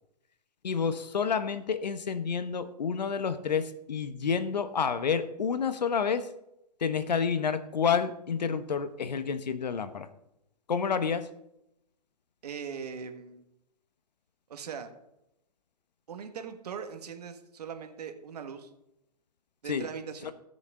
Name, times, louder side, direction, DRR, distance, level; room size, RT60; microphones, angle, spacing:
voice 1, 0.6-6.3 6.8-10.1 10.7-11.3 19.7-19.9 20.2-20.3, left 6 dB, 85° left, 12 dB, 1.1 m, -29 dB
voice 2, 12.4-13.4 14.5-14.9 16.1-18.7 19.6-20.3, right 6 dB, 70° right, 7 dB, 1.7 m, -40 dB
18.5 x 6.4 x 3.8 m, 0.84 s
hypercardioid pair, 130°, 21 cm